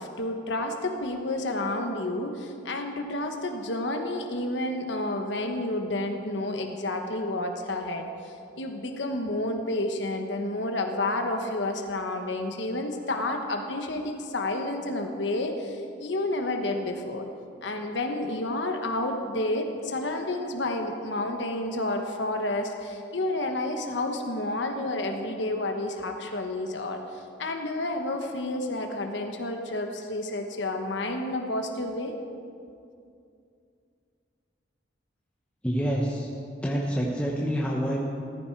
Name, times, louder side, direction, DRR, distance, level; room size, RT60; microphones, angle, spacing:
voice 1, 0.0-17.3 17.6-32.1, left 2 dB, 80° left, 4 dB, 1.2 m, -30 dB
voice 2, 35.6-36.3 36.6-38.0, equal, 5° left, -4 dB, 1.1 m, -27 dB
14.5 x 14.5 x 4.6 m, 2.5 s
head